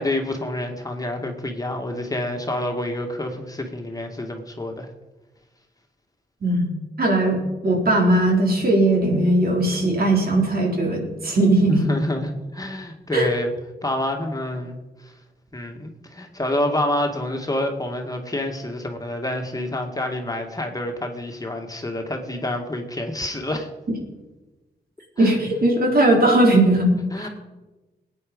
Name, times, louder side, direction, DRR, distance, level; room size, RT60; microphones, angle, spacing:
voice 1, 0.0-4.9 11.7-13.5 13.8-15.1 15.5-23.7 25.2-25.4 27.1-27.3, left 1 dB, 20° left, 2 dB, 2.0 m, -28 dB
voice 2, 7.0-11.8 13.1-13.3 25.2-26.9 27.2-27.3, right 1 dB, 60° right, 0 dB, 4.0 m, -19 dB
20.5 x 9.2 x 5.3 m, 1.2 s
cardioid pair, 85°, 18 cm